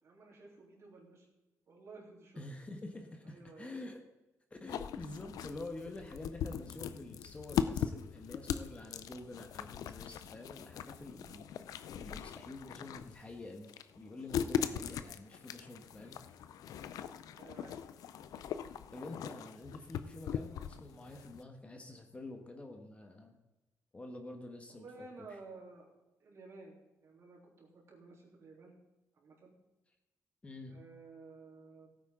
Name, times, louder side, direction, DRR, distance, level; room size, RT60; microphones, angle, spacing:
voice 1, 0.0-1.3 1.7-2.5 3.2-3.7 11.1-11.4 17.3-17.8 24.7-25.9 26.2-28.8 29.1-29.6 30.7-31.9, right 3 dB, 55° right, -2 dB, 3.5 m, -54 dB
voice 2, 2.4-4.0 4.5-11.6 11.9-16.2 18.9-23.4 23.9-24.8 25.2-25.3 30.4-30.8, left 2 dB, 20° left, 4 dB, 1.3 m, -47 dB
sound 1, 4.7-21.4, left 9 dB, 85° left, 0.5 m, -40 dB
16.0 x 9.1 x 3.8 m, 0.98 s
cardioid pair, 130°, 6 cm